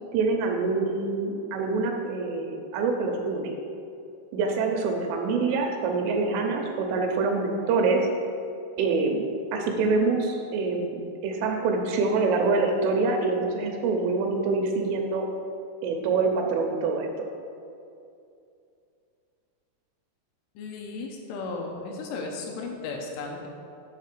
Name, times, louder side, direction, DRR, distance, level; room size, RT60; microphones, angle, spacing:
voice 1, 0.1-3.5 4.3-8.0 8.8-9.2 9.5-15.3 15.8-17.1, right 4 dB, 80° right, 3 dB, 3.0 m, -25 dB
voice 2, 20.6-23.5, left 3 dB, 80° left, 1 dB, 3.0 m, -35 dB
8.4 x 3.9 x 6.5 m, 2.5 s
omnidirectional pair, 5.9 m